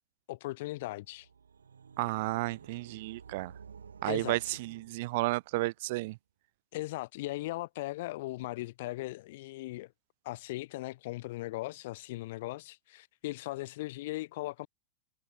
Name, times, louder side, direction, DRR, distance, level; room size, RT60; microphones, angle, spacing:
voice 1, 0.3-1.3 4.0-4.4 6.7-9.9 10.2-14.7, left 18 dB, 50° left, 2.3 m, -38 dB
sound 1, 1.0-5.7, right 6 dB, 70° right, 5.6 m, -53 dB
voice 2, 2.0-3.5 4.0-6.2, right 21 dB, 50° right, 0.5 m, -32 dB
figure-of-eight pair, 90°, 0 cm